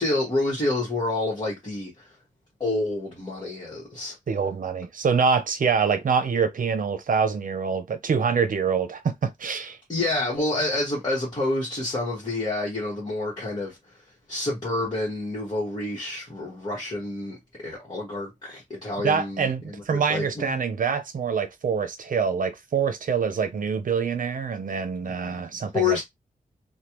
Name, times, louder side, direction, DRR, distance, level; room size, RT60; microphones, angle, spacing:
voice 1, 0.0-2.1 2.6-4.2 9.9-13.8 14.3-20.6 25.0-26.0, left 2 dB, 30° left, 1.4 m, -28 dB
voice 2, 4.3-9.8 19.0-26.0, right 6 dB, 65° right, 0.7 m, -25 dB
3.3 x 2.3 x 3.0 m
wide cardioid pair, 140°, 15 cm